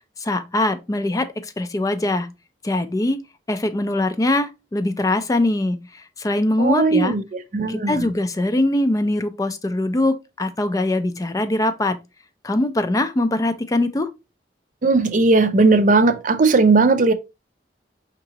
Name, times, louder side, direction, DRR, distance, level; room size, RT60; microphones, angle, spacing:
voice 1, 0.2-2.3 2.6-3.2 3.5-7.1 7.7-12.0 12.4-14.1, left 1 dB, 20° left, 0.4 m, -22 dB
voice 2, 6.6-8.1 14.8-17.1, right 3 dB, 45° right, 0.5 m, -17 dB
4.9 x 3.7 x 2.8 m
head